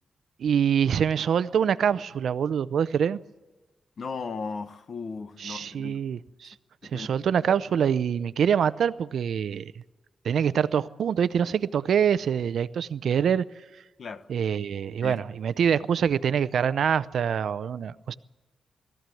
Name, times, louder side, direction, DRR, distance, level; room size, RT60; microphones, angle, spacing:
voice 1, 0.4-3.2 5.4-6.5 6.9-9.7 10.2-13.4 14.3-18.1, right 8 dB, 70° right, 0.6 m, -25 dB
voice 2, 4.0-6.0 6.8-7.3 14.0-14.3 15.0-15.2, left 4 dB, 50° left, 1.1 m, -36 dB
20.5 x 14.5 x 9.2 m
wide cardioid pair, 150°, 0 cm